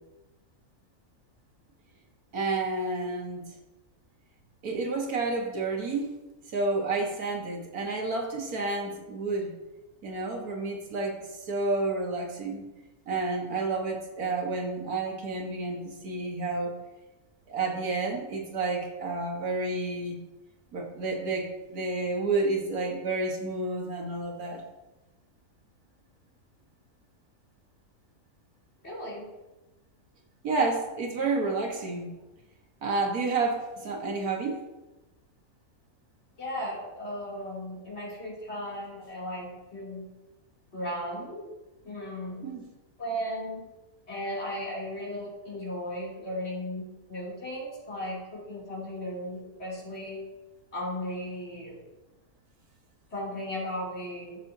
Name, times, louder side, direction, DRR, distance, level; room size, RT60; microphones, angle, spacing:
voice 1, 2.3-3.4 4.6-6.2 6.5-9.5 10.0-12.6 13.1-16.7 17.5-20.2 20.7-24.7 30.4-32.1 32.8-34.6 42.4-42.7, right 3 dB, 90° right, 1 dB, 1.9 m, -30 dB
voice 2, 28.8-29.3 36.4-40.1 40.7-41.4 41.8-42.5 43.0-43.6 44.1-50.2 50.7-51.7 53.1-54.4, equal, 45° left, -6 dB, 3.2 m, -36 dB
11.5 x 7.4 x 2.7 m, 1.1 s
omnidirectional pair, 1.5 m